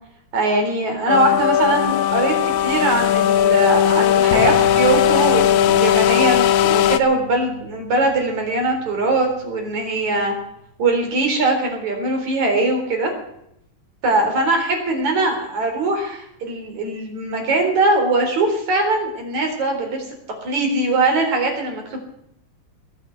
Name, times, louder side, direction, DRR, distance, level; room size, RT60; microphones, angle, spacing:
voice 1, 0.3-10.3 10.8-13.1 14.0-20.0 20.4-22.0, right 2 dB, 60° right, 3 dB, 5.2 m, -21 dB
sound 1, 1.1-7.0, left 10 dB, 75° left, 2.0 m, -17 dB
sound 2, 4.3-10.7, left 3 dB, 55° left, 2.6 m, -34 dB
20.5 x 8.6 x 7.8 m, 0.75 s
omnidirectional pair, 3.8 m